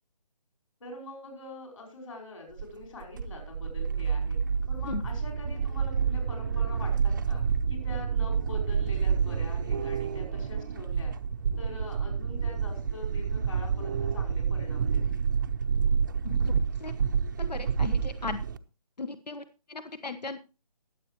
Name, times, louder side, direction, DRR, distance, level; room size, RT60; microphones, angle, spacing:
voice 1, 0.8-4.4 4.7-11.1 11.6-15.2, left 2 dB, 55° left, 2 dB, 5.3 m, -44 dB
sound 1, 2.6-18.6, right 6 dB, 30° right, 0.6 m, -28 dB
voice 2, 16.2-16.9 17.4-18.4 19.0-20.4, left 4 dB, 85° left, 10 dB, 1.3 m, -37 dB
21.0 x 7.9 x 3.0 m, 0.31 s
figure-of-eight pair, 160°, 20 cm